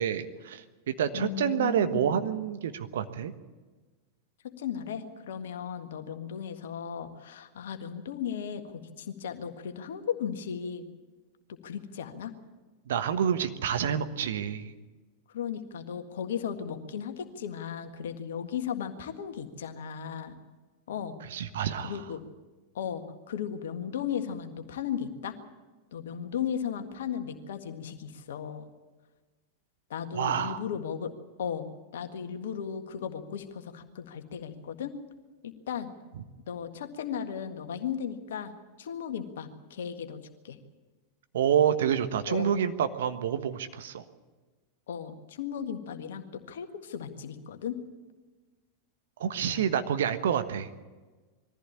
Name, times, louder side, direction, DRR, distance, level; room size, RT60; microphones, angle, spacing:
voice 1, 0.0-3.3 12.9-14.7 21.3-22.0 30.1-30.6 41.3-44.0 49.2-50.7, right 8 dB, 60° right, 9 dB, 1.3 m, -28 dB
voice 2, 1.1-2.1 4.4-10.9 11.5-12.3 15.3-20.3 20.9-21.2 21.8-22.2 22.7-25.4 25.9-28.7 29.9-31.1 31.4-31.7 31.9-34.9 35.4-35.9 36.5-40.6 42.3-42.5 44.9-47.8 49.5-49.7, left 8 dB, 60° left, 7 dB, 1.7 m, -36 dB
22.0 x 14.5 x 8.7 m, 1.3 s
figure-of-eight pair, 90°, 0 cm